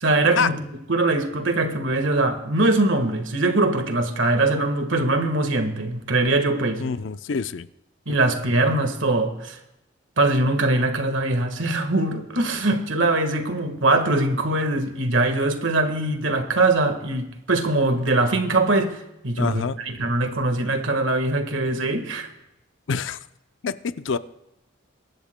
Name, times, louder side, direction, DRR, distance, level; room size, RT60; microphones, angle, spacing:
voice 1, 0.0-0.6 0.9-6.8 8.1-9.6 10.2-19.0 19.2-22.3, right 2 dB, 70° right, 7 dB, 1.5 m, -22 dB
voice 2, 6.8-7.7 19.4-19.9 22.9-23.2 23.6-24.2, left 5 dB, 65° left, 13 dB, 0.5 m, -26 dB
24.0 x 12.0 x 2.2 m, 0.89 s
head